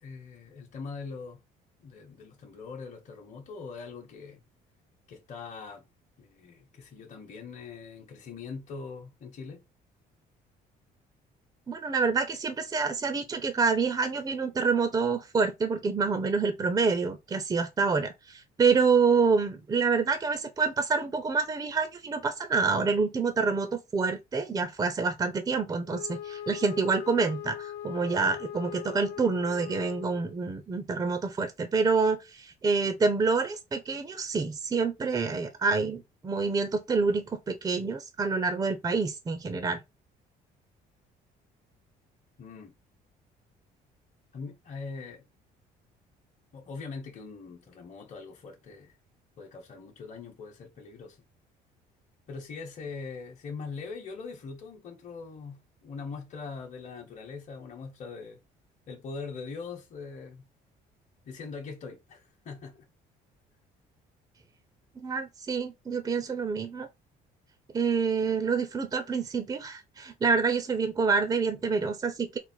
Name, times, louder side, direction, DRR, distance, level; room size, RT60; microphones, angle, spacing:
voice 1, 0.0-1.4 1.8-4.4 5.1-5.8 6.2-9.6 42.4-42.7 44.3-45.2 46.5-48.9 49.4-51.2 52.3-58.4 58.9-60.4 61.3-62.8, left 4 dB, 45° left, 1.1 m, -42 dB
voice 2, 11.7-39.8 65.0-66.9 67.7-72.4, right 4 dB, 25° right, 0.6 m, -27 dB
Wind instrument woodwind instrument, 25.8-30.5, left 11 dB, 80° left, 0.8 m, -40 dB
4.1 x 2.1 x 4.4 m
cardioid pair, 110°, 17 cm